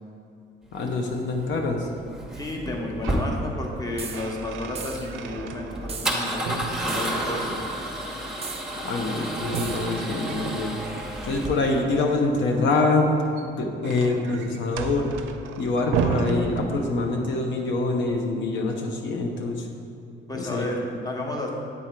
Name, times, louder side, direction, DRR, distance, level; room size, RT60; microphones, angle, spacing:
voice 1, 0.7-1.9 8.8-10.7 11.2-13.2 13.6-15.1 15.6-19.7 20.3-20.6, left 3 dB, 70° left, 2 dB, 0.7 m, -25 dB
Male speech man speaking / Car / Engine starting, 0.7-11.8, right 1 dB, 5° right, 0.9 m, -32 dB
voice 2, 2.3-7.6 20.3-21.5, left 1 dB, 20° left, 0 dB, 1.0 m, -32 dB
sound 1, 2.7-3.3 3.7-6.1 6.4-7.7 9.4-11.1 13.1-17.3, right 5 dB, 90° right, 0.4 m, -33 dB
sound 2, 4.0-4.3 4.8-5.1 5.9-6.2 6.9-7.3 8.4-8.7 9.5-9.9, right 5 dB, 30° right, 0.5 m, -37 dB
8.4 x 3.7 x 4.3 m, 2.7 s
cardioid pair, 90°, 20 cm